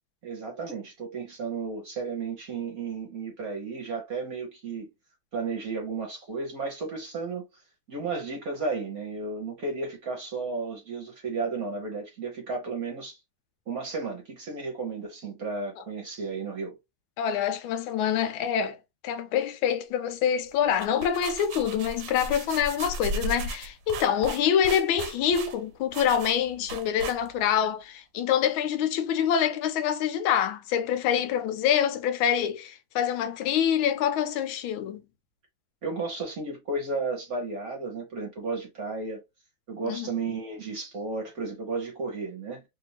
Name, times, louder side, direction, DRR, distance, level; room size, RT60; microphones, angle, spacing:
voice 1, 0.2-4.9 5.3-7.5 7.9-13.2 13.7-16.8 35.8-39.2 39.7-42.6, right 4 dB, 50° right, 1.3 m, -33 dB
voice 2, 17.2-18.8 19.0-35.0 39.8-40.1, left 9 dB, 75° left, 1.4 m, -26 dB
sound 1, 20.6-27.6, right 3 dB, 75° right, 1.3 m, -36 dB
3.3 x 2.6 x 2.9 m
omnidirectional pair, 2.3 m